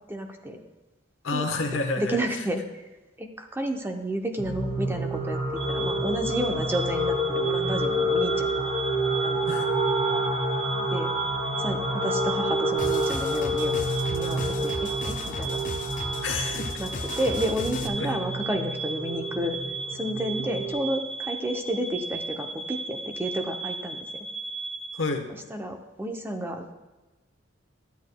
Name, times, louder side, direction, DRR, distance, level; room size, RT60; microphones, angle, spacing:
voice 1, 0.1-0.6 1.3-1.4 2.0-2.6 3.2-5.4 5.7-8.7 9.2-9.4 10.9-11.1 11.6-13.8 14.1-15.6 16.8-16.9 17.2-19.6 19.9-24.3 25.5-26.7, right 1 dB, 10° right, 4 dB, 0.6 m, -31 dB
voice 2, 1.2-2.5 9.4-9.7 16.2-16.7 18.0-18.1 24.9-25.3, left 3 dB, 75° left, 4 dB, 1.1 m, -29 dB
sound 1, 4.4-20.7, right 1 dB, 35° right, 2.5 m, -28 dB
sound 2, 5.6-24.9, right 3 dB, 60° right, 1.1 m, -36 dB
sound 3, 12.8-17.9, left 3 dB, 40° left, 0.6 m, -36 dB
13.0 x 8.3 x 2.2 m, 1.2 s
head